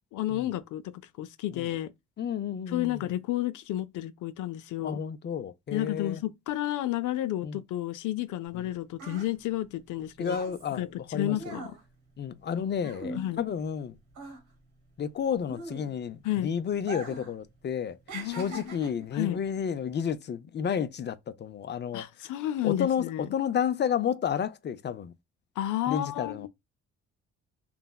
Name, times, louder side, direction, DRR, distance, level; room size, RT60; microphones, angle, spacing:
voice 1, 0.1-0.9 1.2-1.9 2.7-5.0 5.7-10.4 10.8-11.7 12.6-12.7 13.1-13.4 16.2-16.5 18.1-18.7 19.1-19.4 21.9-23.3 25.6-26.5, left 14 dB, 80° left, 0.5 m, -31 dB
voice 2, 2.2-3.1 4.8-6.2 7.4-7.6 8.5-8.6 10.2-11.6 12.2-14.0 15.0-18.0 18.3-22.0 22.6-25.1 25.9-26.5, left 8 dB, 35° left, 0.5 m, -31 dB
sound 1, 8.5-13.8 14.1-16.3 16.8-17.4 17.6-19.1 19.8-20.0, right 2 dB, 85° right, 1.3 m, -42 dB
3.3 x 2.1 x 2.2 m
cardioid pair, 90°, 30 cm